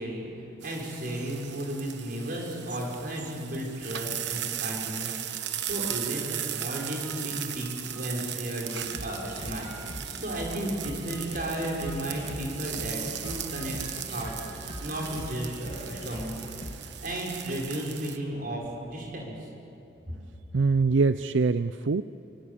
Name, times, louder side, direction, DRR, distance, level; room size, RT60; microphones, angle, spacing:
voice 1, 0.0-16.3 16.8-19.5, right 1 dB, 50° right, -1 dB, 6.1 m, -34 dB
sound 1, 0.6-18.2, right 11 dB, 65° right, 1.2 m, -37 dB
sound 2, 5.1-12.5 12.9-15.0, right 2 dB, 25° right, 4.5 m, -51 dB
sound 3, 8.8-16.8, equal, 30° left, 3.1 m, -42 dB
voice 2, 20.5-22.0, right 4 dB, 80° right, 12 dB, 0.5 m, -23 dB
24.5 x 24.0 x 8.6 m, 2.8 s
head